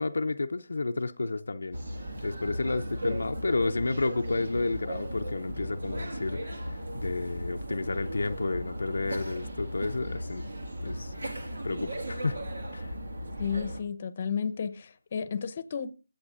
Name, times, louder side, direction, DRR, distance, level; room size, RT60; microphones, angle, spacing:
voice 1, 0.0-1.8 2.2-10.4 10.8-11.1 11.6-12.4 12.7-12.9, left 3 dB, 80° left, 0.5 m, -31 dB
sound 1, 1.7-13.8, equal, 85° right, 1.9 m, -36 dB
voice 2, 13.4-15.9, left 6 dB, 45° left, 0.8 m, -32 dB
20.5 x 8.0 x 2.5 m
figure-of-eight pair, 160°, 0 cm